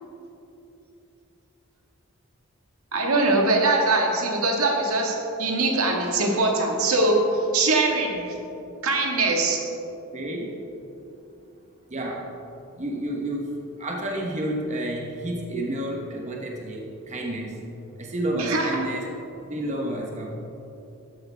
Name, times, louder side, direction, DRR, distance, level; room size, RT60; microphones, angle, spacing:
voice 1, 2.9-8.4 8.8-9.6 18.3-18.8, right 2 dB, 85° right, 0 dB, 1.8 m, -22 dB
voice 2, 10.1-10.6 11.9-12.3 12.8-13.5 13.8-17.5 18.0-19.0 19.5-20.3, right 1 dB, 35° right, 0 dB, 1.1 m, -30 dB
13.0 x 10.5 x 3.5 m, 2.9 s
head